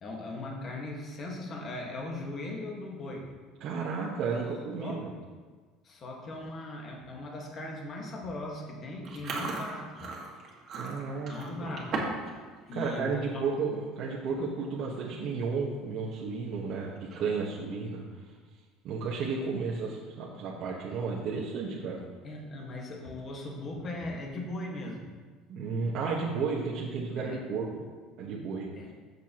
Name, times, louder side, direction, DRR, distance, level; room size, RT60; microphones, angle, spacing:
voice 1, 0.0-3.3 4.8-5.0 5.8-10.2 11.3-12.0 12.6-13.5 22.2-25.1 27.2-27.4 28.7-28.9, left 2 dB, 30° left, -1 dB, 1.6 m, -39 dB
voice 2, 3.6-5.1 10.7-11.3 11.6-11.8 12.7-18.2 18.8-22.0 25.5-27.8 28.2-28.7, right 4 dB, 50° right, -4 dB, 1.2 m, -33 dB
Chewing mastication, 9.0-12.3 12.6-12.9 13.4-13.6 14.3-14.4 14.6-15.0 15.4-15.5 17.0-17.5, right 3 dB, 35° right, 1.8 m, -37 dB
14.0 x 6.8 x 3.0 m, 1.5 s
cardioid pair, 155°, 0 cm